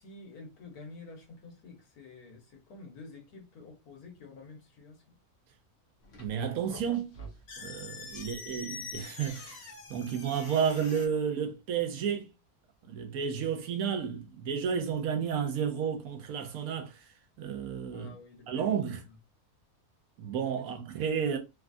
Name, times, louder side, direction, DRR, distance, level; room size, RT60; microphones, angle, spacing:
voice 1, 0.0-5.2 8.1-8.6 17.9-18.9 20.6-20.7 21.0-21.1, left 3 dB, 90° left, 1.5 m, -50 dB
sound 1, 6.0-11.1, left 3 dB, 55° left, 0.9 m, -45 dB
voice 2, 6.2-7.1 7.6-12.3 12.8-17.0 17.4-18.2 18.5-19.1 20.2-21.4, right 7 dB, 80° right, 1.1 m, -32 dB
3.2 x 2.3 x 2.5 m
omnidirectional pair, 1.6 m